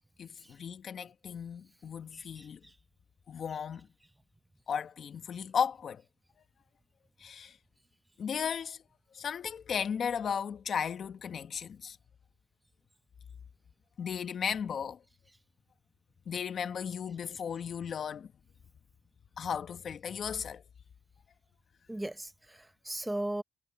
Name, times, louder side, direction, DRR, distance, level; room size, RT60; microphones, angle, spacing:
voice 1, 0.2-2.6 3.3-3.9 4.7-6.0 7.2-7.6 8.2-8.8 9.1-12.0 14.0-15.0 16.3-18.3 19.4-20.6, left 7 dB, 55° left, 1.5 m, -35 dB
voice 2, 2.1-2.7 3.5-3.6 21.9-23.4, right 1 dB, 10° right, 0.8 m, -38 dB
cardioid pair, 90°, 0 cm